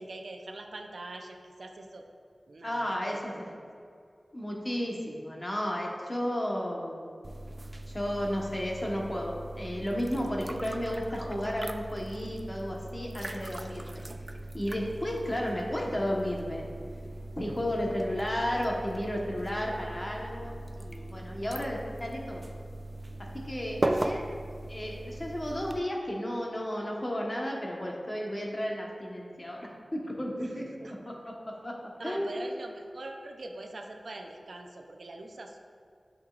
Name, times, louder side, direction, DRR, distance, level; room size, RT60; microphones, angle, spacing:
voice 1, 0.0-2.1 2.5-3.4 23.8-24.3 30.4-30.9 32.0-35.6, right 2 dB, 75° right, 3 dB, 0.6 m, -43 dB
voice 2, 2.6-3.5 4.3-7.1 7.9-14.0 14.5-16.7 17.4-20.5 20.8-22.5 23.2-24.3 24.7-31.7 32.0-32.5, equal, 30° left, -1 dB, 1.1 m, -33 dB
sound 1, 7.2-25.8, right 1 dB, 25° right, 0.3 m, -38 dB
8.9 x 6.3 x 2.4 m, 2.3 s
wide cardioid pair, 75°, 0 cm